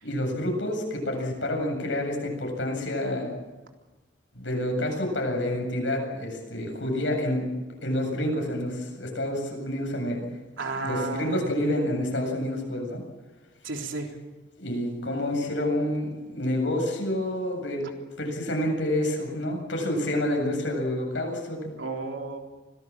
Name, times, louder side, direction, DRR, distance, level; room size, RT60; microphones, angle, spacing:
voice 1, 0.0-3.3 4.3-7.5 7.8-10.2 10.7-13.0 14.6-17.9 18.2-21.6, left 1 dB, 75° left, 2 dB, 7.8 m, -28 dB
voice 2, 10.6-11.4 13.6-14.1 21.8-22.4, right 3 dB, 85° right, 2 dB, 3.7 m, -32 dB
25.5 x 18.5 x 7.7 m, 1.2 s
head